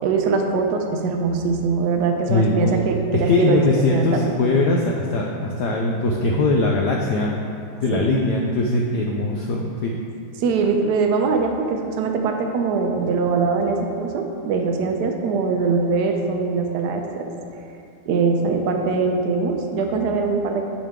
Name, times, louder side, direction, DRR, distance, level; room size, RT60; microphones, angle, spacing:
voice 1, 0.0-3.6 3.9-4.2 7.9-8.1 10.4-17.3 18.1-20.7, right 4 dB, 75° right, 3 dB, 0.9 m, -22 dB
voice 2, 2.3-2.7 3.1-7.3 7.8-10.0, left 2 dB, 85° left, 0 dB, 0.9 m, -21 dB
9.9 x 5.1 x 3.6 m, 2.7 s
omnidirectional pair, 2.4 m